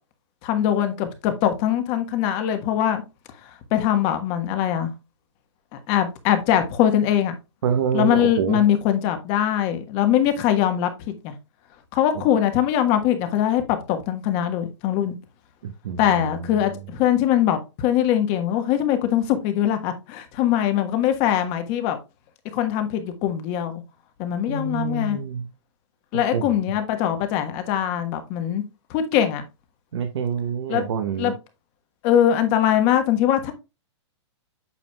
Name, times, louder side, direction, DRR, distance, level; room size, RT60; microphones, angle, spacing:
voice 1, 0.4-3.0 3.7-4.9 5.7-7.3 7.9-11.3 11.9-15.1 16.0-22.0 22.5-23.8 24.2-25.2 26.1-28.6 28.9-29.4 30.7-30.8 31.2-31.3 32.0-33.5, left 10 dB, 35° left, 1.3 m, -22 dB
voice 2, 7.6-8.6 15.6-16.3 24.5-25.5 26.3-26.5 29.9-31.3, right 7 dB, 65° right, 1.1 m, -26 dB
8.4 x 6.1 x 2.3 m
hypercardioid pair, 145°, 16 cm